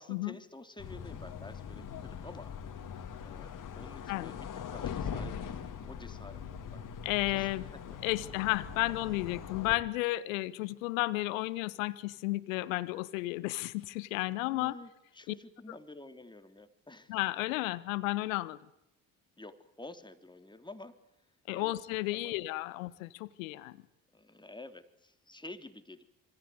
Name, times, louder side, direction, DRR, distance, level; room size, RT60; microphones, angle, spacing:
voice 1, 0.0-2.5 2.8-3.5 3.8-6.4 6.7-7.0 7.3-8.0 14.4-17.2 19.4-21.0 21.5-21.7 22.1-22.4 24.1-26.0, left 2 dB, 10° left, 8 dB, 3.5 m, -50 dB
sound 1, 0.8-9.8, left 7 dB, 50° left, 3.3 m, -41 dB
voice 2, 4.1-4.4 7.0-7.6 8.0-14.8 17.1-18.6 21.5-23.8, left 19 dB, 75° left, 17 dB, 1.4 m, -33 dB
27.0 x 26.0 x 8.1 m, 0.85 s
hypercardioid pair, 55°, 40 cm